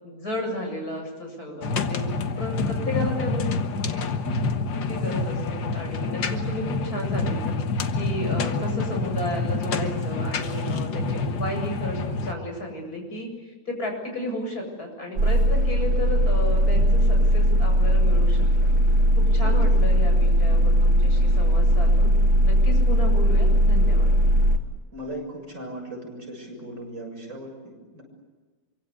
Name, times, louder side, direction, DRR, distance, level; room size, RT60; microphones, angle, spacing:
voice 1, 0.0-2.0 2.4-3.5 3.9-4.1 4.9-7.5 7.9-18.7 19.2-22.1 22.4-24.1, left 1 dB, 50° left, 2 dB, 8.3 m, -33 dB
sound 1, 1.6-12.3, left 3 dB, 70° left, 2.1 m, -27 dB
voice 2, 2.6-2.9 8.2-8.5 19.4-19.6 19.9-20.0 24.9-28.0, equal, 40° right, 1 dB, 7.8 m, -38 dB
sound 2, 15.2-24.6, equal, 60° right, 3.2 m, -19 dB
26.5 x 25.0 x 8.5 m, 1.3 s
omnidirectional pair, 2.1 m